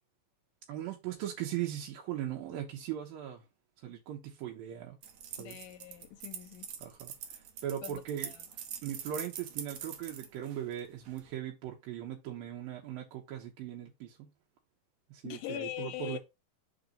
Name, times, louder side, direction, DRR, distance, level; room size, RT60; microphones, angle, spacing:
voice 1, 0.7-3.4 3.8-5.0 5.4-5.6 6.8-8.3 8.8-14.3 15.1-16.2, right 11 dB, 85° right, 2.7 m, -39 dB
sound 1, 5.0-11.3, right 8 dB, 65° right, 2.0 m, -44 dB
voice 2, 5.4-6.7 7.8-8.4 15.2-16.2, left 15 dB, 80° left, 2.1 m, -42 dB
5.3 x 4.1 x 5.0 m
omnidirectional pair, 4.0 m